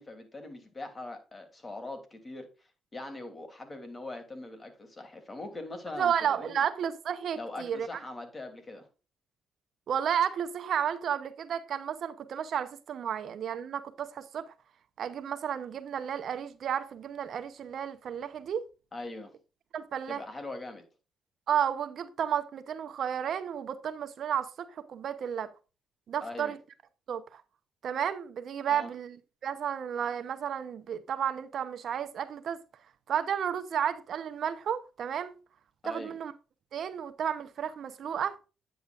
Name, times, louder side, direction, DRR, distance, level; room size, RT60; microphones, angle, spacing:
voice 1, 0.0-2.5 2.9-6.6 7.4-8.9 18.9-19.3 20.1-20.8 26.2-26.6 28.7-28.9 35.8-36.2, left 2 dB, 30° left, 2.9 m, -42 dB
voice 2, 6.0-7.9 9.9-14.4 15.0-18.6 19.7-20.2 21.5-25.5 26.1-26.6 27.1-27.4 27.8-29.2 29.4-32.6 33.1-35.4 35.8-36.3 36.7-38.3, right 8 dB, 60° right, 0.9 m, -32 dB
9.4 x 8.6 x 2.5 m
cardioid pair, 90°, 0 cm